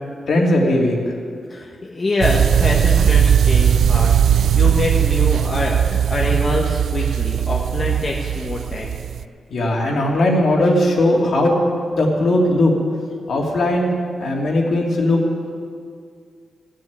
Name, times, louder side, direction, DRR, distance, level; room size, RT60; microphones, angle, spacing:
voice 1, 0.3-1.0 9.5-11.6 11.9-12.7 13.3-13.9 14.2-15.2, left 1 dB, 60° left, -1 dB, 2.7 m, -18 dB
voice 2, 1.5-9.0, left 2 dB, 30° left, -3 dB, 1.3 m, -25 dB
sound 1, 2.2-9.2, right 9 dB, 90° right, 0.4 m, -18 dB
16.0 x 7.6 x 9.5 m, 2.2 s
wide cardioid pair, 160°, 0 cm